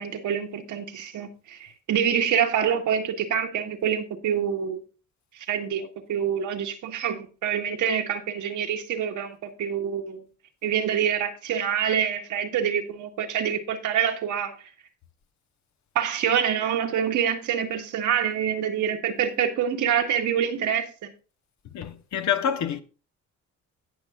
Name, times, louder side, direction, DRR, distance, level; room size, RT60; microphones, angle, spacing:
voice 1, 0.0-4.8 5.3-10.2 10.6-14.5 15.9-21.1, right 8 dB, 80° right, 1.7 m, -26 dB
voice 2, 21.7-22.8, left 8 dB, 65° left, 1.1 m, -27 dB
17.5 x 6.2 x 2.5 m
cardioid pair, 90°, 30 cm